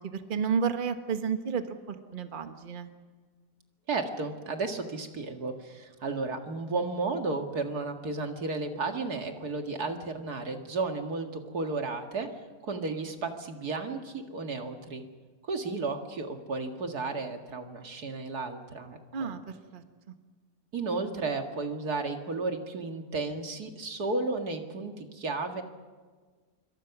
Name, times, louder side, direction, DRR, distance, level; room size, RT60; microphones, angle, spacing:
voice 1, 0.0-2.9 19.1-19.4 19.7-19.8, right 6 dB, 35° right, 7 dB, 1.2 m, -31 dB
voice 2, 3.9-12.3 12.6-15.0 15.4-19.3 20.7-25.6, right 3 dB, 70° right, 4 dB, 2.5 m, -33 dB
26.5 x 23.5 x 6.0 m, 1.5 s
omnidirectional pair, 1.7 m